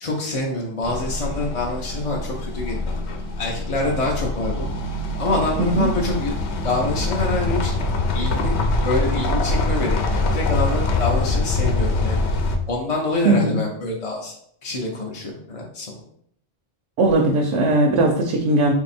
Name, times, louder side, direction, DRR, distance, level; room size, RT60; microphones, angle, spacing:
voice 1, 0.0-2.8 3.4-4.7 5.2-6.3 6.6-7.7 8.1-12.2 12.7-14.3 14.6-16.0, left 2 dB, 45° left, -2 dB, 0.5 m, -26 dB
sound 1, 0.8-12.6, left 2 dB, 75° left, 0.9 m, -24 dB
voice 2, 13.2-13.6 17.0-18.7, right 2 dB, 80° right, 1 dB, 0.9 m, -18 dB
3.4 x 2.7 x 4.2 m, 0.66 s
omnidirectional pair, 1.2 m